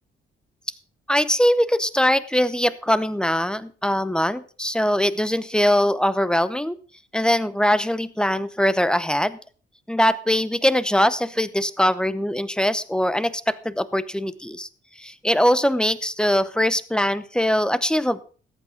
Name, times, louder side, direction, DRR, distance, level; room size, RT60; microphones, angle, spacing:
voice 1, 1.1-6.8 7.1-9.4 9.9-14.7 15.0-18.2, equal, 5° left, 16 dB, 0.8 m, -22 dB
14.0 x 8.9 x 5.1 m, 0.39 s
cardioid pair, 90°, 20 cm